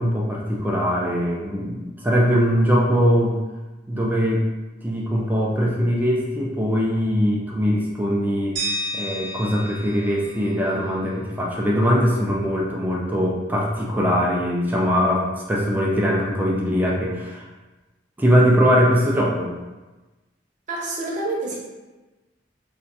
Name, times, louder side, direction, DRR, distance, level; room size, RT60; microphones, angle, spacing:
voice 1, 0.0-3.4 3.9-4.4 4.8-8.6 8.9-17.4 18.2-19.5, equal, 10° right, -3 dB, 0.3 m, -21 dB
sound 1, 8.6-11.5, right 1 dB, 70° right, 0.9 m, -32 dB
voice 2, 20.7-21.6, right 2 dB, 40° right, -5 dB, 0.8 m, -27 dB
2.4 x 2.2 x 3.9 m, 1.2 s
head